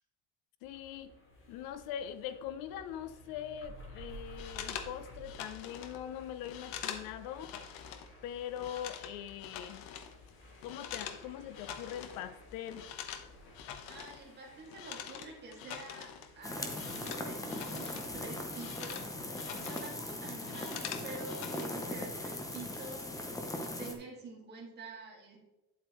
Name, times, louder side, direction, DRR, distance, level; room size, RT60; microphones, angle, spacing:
voice 1, 0.6-1.1 1.5-7.5 8.2-9.9 10.6-12.9, left 10 dB, 70° left, 11 dB, 0.7 m, -42 dB
sound 1, 0.6-19.9, equal, 35° left, 2.6 m, -55 dB
sound 2, 4.4-8.1 8.4-11.2 11.5-12.3 12.5-18.1 18.4-20.0 20.3-21.7, left 9 dB, 85° left, 1.0 m, -45 dB
voice 2, 13.9-25.4, right 3 dB, 30° right, -3 dB, 2.5 m, -48 dB
sound 3, 16.4-23.9, left 1 dB, 10° left, 0.7 m, -39 dB
9.4 x 8.0 x 3.1 m, 1.1 s
cardioid pair, 180°, 36 cm